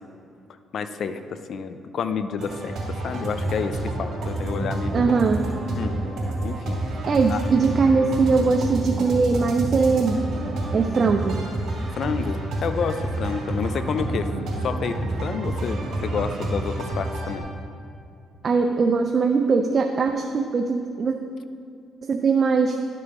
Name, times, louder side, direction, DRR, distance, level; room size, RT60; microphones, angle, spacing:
voice 1, 0.7-5.1 5.8-6.0 6.4-6.8 7.3-7.4 11.9-14.3 14.6-17.5, left 6 dB, 65° left, 10 dB, 0.5 m, -29 dB
sound 1, 2.4-17.4, right 1 dB, 70° right, 2.3 m, -29 dB
voice 2, 4.9-5.4 7.1-10.2 10.7-11.4 18.4-21.1 22.0-22.8, right 4 dB, 45° right, 5 dB, 0.4 m, -21 dB
11.0 x 6.7 x 3.6 m, 2.5 s
cardioid pair, 90°, 0 cm